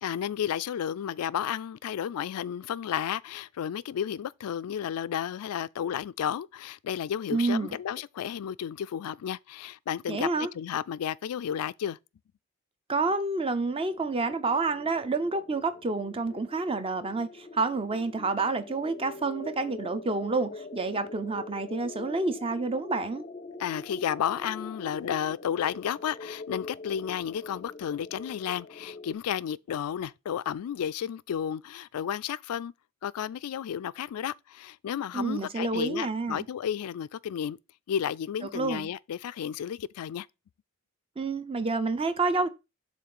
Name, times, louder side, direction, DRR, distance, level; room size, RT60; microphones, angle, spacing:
voice 1, 0.0-12.0 23.6-32.7 33.0-37.6 37.9-40.3, left 9 dB, 85° left, 0.3 m, -32 dB
voice 2, 7.3-7.8 10.1-10.5 12.9-23.2 35.1-36.5 38.5-38.9 41.2-42.5, right 3 dB, 25° right, 0.6 m, -29 dB
sound 1, 13.8-29.1, left 3 dB, 30° left, 0.5 m, -44 dB
7.4 x 3.2 x 5.9 m
head